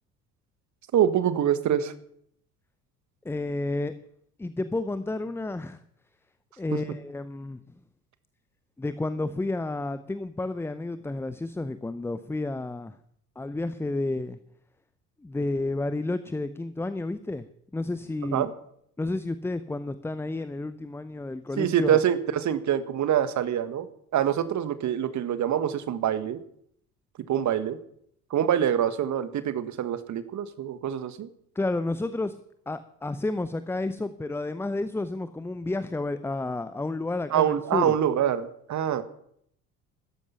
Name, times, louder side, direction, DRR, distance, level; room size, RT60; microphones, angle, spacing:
voice 1, 0.9-1.9 6.7-6.8 18.3-18.5 21.6-23.9 24.1-26.4 27.3-27.8 28.3-31.3 37.3-39.0, right 10 dB, 40° right, 12 dB, 1.6 m, -25 dB
voice 2, 3.2-3.9 4.4-5.8 6.6-7.6 8.8-13.0 13.4-14.4 15.2-17.4 17.7-18.5 19.0-22.0 31.5-32.4 32.7-37.9, left 2 dB, 5° left, 13 dB, 0.6 m, -31 dB
15.0 x 13.5 x 5.8 m, 0.70 s
figure-of-eight pair, 60°, 46 cm